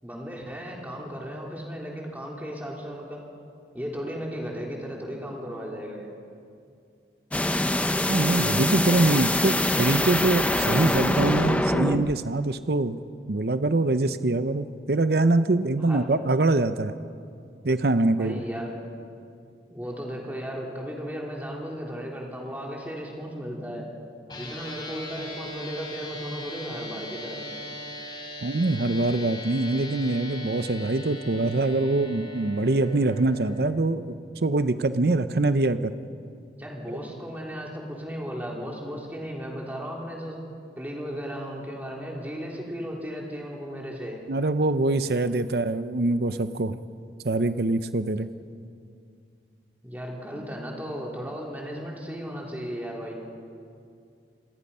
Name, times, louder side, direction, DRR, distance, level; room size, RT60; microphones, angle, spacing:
voice 1, 0.0-3.2 3.7-6.1 15.8-16.0 18.2-18.7 19.7-23.9 24.4-27.4 36.6-40.4 40.8-44.2 49.8-53.2, equal, 10° right, -2 dB, 3.4 m, -35 dB
sound 1, 7.3-12.1, left 1 dB, 10° left, 0.6 m, -24 dB
voice 2, 8.1-13.0 13.3-16.9 17.6-18.4 28.4-35.9 44.3-46.8 47.2-48.3, right 2 dB, 60° right, 12 dB, 0.7 m, -24 dB
sound 2, 24.3-33.6, equal, 25° left, 3.3 m, -39 dB
27.5 x 20.5 x 5.6 m, 2.3 s
head